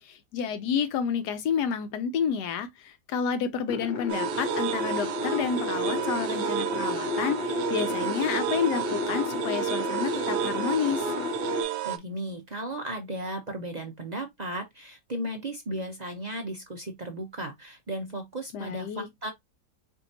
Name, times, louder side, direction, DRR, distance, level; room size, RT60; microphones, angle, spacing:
voice 1, 0.0-11.1 18.5-19.1, left 7 dB, 75° left, 1.1 m, -30 dB
sound 1, 3.7-11.6, left 3 dB, 55° left, 0.6 m, -32 dB
sound 2, 4.1-12.0, right 12 dB, 75° right, 1.1 m, -31 dB
voice 2, 11.8-19.3, right 1 dB, 60° right, 0.4 m, -35 dB
4.4 x 2.8 x 2.7 m
omnidirectional pair, 1.8 m